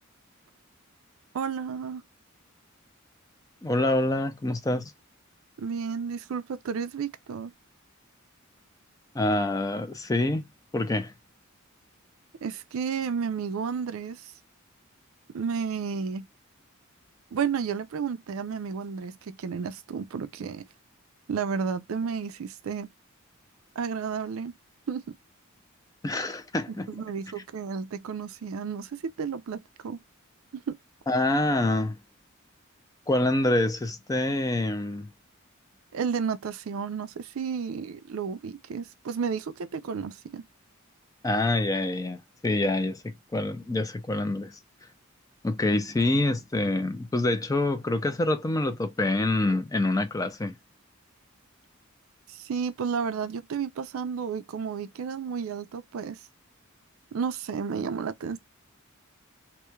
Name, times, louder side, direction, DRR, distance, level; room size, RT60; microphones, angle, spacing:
voice 1, 1.3-2.0 5.6-7.5 12.4-14.3 15.3-16.3 17.3-20.7 21.3-22.9 23.8-24.5 24.9-25.2 26.9-30.0 30.5-30.8 35.9-40.5 52.3-56.3 57.1-58.4, right 6 dB, 75° right, 0.4 m, -32 dB
voice 2, 3.6-4.8 9.1-10.4 10.7-11.1 26.0-26.9 31.1-32.0 33.1-35.1 41.2-44.6 45.4-50.5, left 2 dB, 15° left, 0.4 m, -26 dB
3.0 x 2.1 x 2.2 m
head